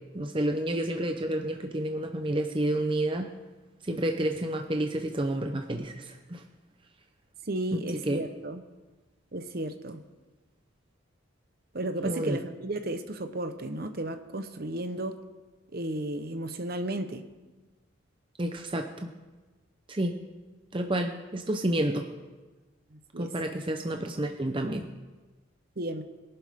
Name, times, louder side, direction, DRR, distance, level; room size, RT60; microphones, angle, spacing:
voice 1, 0.1-3.3 3.8-6.4 7.7-7.8 8.1-8.2 12.0-12.4 18.4-18.9 19.9-20.1 20.7-22.0 23.2-24.8, right 1 dB, 25° right, 4 dB, 0.7 m, -29 dB
voice 2, 7.5-8.6 9.3-10.0 11.7-15.2 15.7-17.2 22.9-23.3 25.8-26.0, right 1 dB, 50° right, 8 dB, 1.0 m, -34 dB
22.5 x 11.5 x 3.7 m, 1.2 s
head